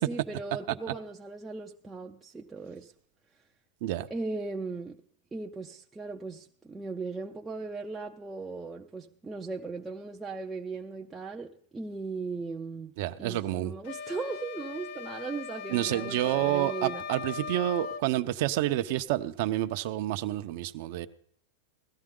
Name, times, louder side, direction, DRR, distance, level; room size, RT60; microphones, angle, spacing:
voice 1, 0.0-2.9 4.1-5.0 5.3-17.0, right 3 dB, 10° right, 0.5 m, -38 dB
voice 2, 13.0-13.7 15.7-21.1, right 14 dB, 50° right, 0.7 m, -29 dB
sound 1, 13.8-18.1, left 6 dB, 45° left, 0.6 m, -39 dB
17.0 x 13.0 x 3.8 m
supercardioid pair, 165°, 0 cm